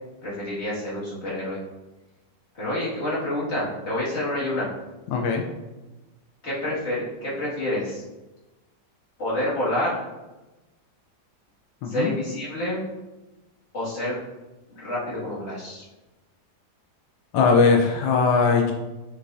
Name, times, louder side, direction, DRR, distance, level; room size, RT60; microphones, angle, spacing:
voice 1, 0.2-1.6 2.5-4.7 6.4-8.0 9.2-10.0 11.9-12.8 13.7-14.1 14.7-15.8, left 1 dB, 35° left, -8 dB, 2.4 m, -28 dB
voice 2, 5.1-5.4 11.8-12.1 17.3-18.7, left 4 dB, 90° left, 2 dB, 1.4 m, -19 dB
6.6 x 5.3 x 2.7 m, 1.1 s
omnidirectional pair, 2.0 m